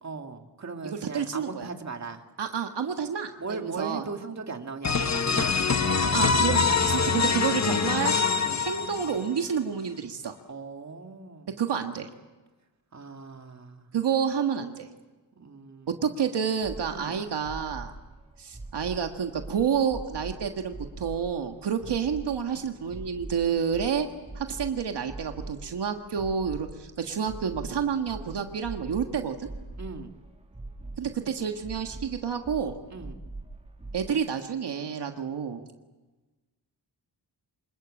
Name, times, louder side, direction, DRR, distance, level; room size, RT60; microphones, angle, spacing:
voice 1, 0.0-2.2 3.4-6.1 6.6-7.5 8.4-8.7 10.5-11.6 12.9-13.9 15.3-16.0 16.9-17.2 29.8-30.1 32.9-33.2, right 4 dB, 40° right, 4 dB, 2.2 m, -39 dB
voice 2, 0.8-1.7 2.4-4.0 6.1-8.1 8.6-10.4 11.6-12.1 13.9-14.9 16.0-17.9 18.4-24.1 24.3-29.5 31.0-32.8 33.9-35.6, right 7 dB, 75° right, 5 dB, 1.7 m, -29 dB
sound 1, 4.8-9.4, left 5 dB, 40° left, 1.2 m, -24 dB
sound 2, 16.6-34.1, right 2 dB, 15° right, 2.9 m, -43 dB
26.0 x 21.0 x 8.7 m, 1.2 s
wide cardioid pair, 120°, 41 cm